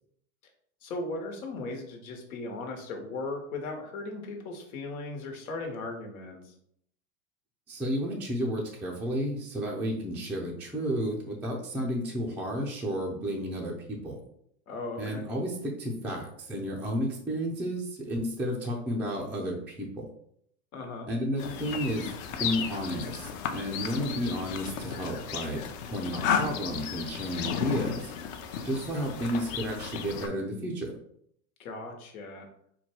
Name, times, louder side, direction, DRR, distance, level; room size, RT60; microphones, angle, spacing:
voice 1, 0.8-6.5 14.7-15.2 20.7-21.1 31.6-32.5, left 2 dB, 85° left, 3 dB, 1.2 m, -37 dB
voice 2, 7.7-14.2 15.0-20.0 21.1-25.6 25.9-28.1 28.6-30.9, equal, 5° right, -3 dB, 0.3 m, -32 dB
sound 1, 21.4-30.3, left 7 dB, 45° left, 0.6 m, -34 dB
4.4 x 2.2 x 4.3 m, 0.70 s
supercardioid pair, 130°, 41 cm